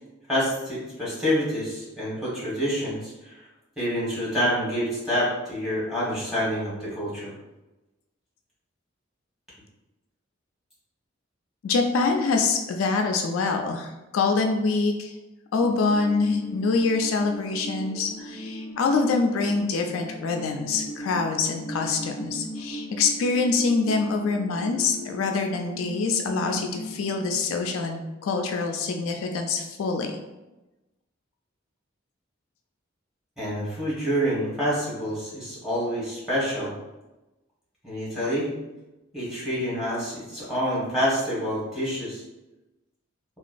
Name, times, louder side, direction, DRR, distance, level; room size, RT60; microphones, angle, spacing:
voice 1, 0.3-3.3 3.8-7.3 33.4-36.7 37.8-38.5 39.1-42.2, equal, ahead, -8 dB, 1.2 m, -27 dB
voice 2, 11.6-15.1 15.5-30.2, left 4 dB, 85° left, 3 dB, 0.3 m, -25 dB
sound 1, 15.6-27.4, equal, 40° right, 1.0 m, -38 dB
3.0 x 2.3 x 2.5 m, 1.0 s
head